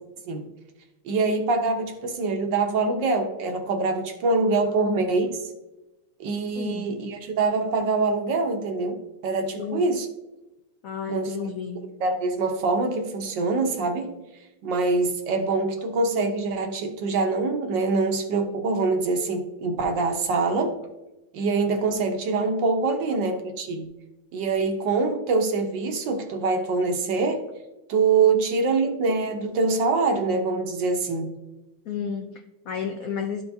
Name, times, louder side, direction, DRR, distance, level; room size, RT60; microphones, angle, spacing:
voice 1, 1.0-5.5 6.2-10.1 11.1-11.3 12.0-14.1 14.6-20.8 21.3-23.8 24.3-27.4 27.9-31.3, right 3 dB, 70° right, 5 dB, 1.5 m, -24 dB
voice 2, 10.8-11.8 31.8-33.4, left 7 dB, 80° left, 4 dB, 0.7 m, -32 dB
12.5 x 4.6 x 2.7 m, 1.0 s
omnidirectional pair, 2.2 m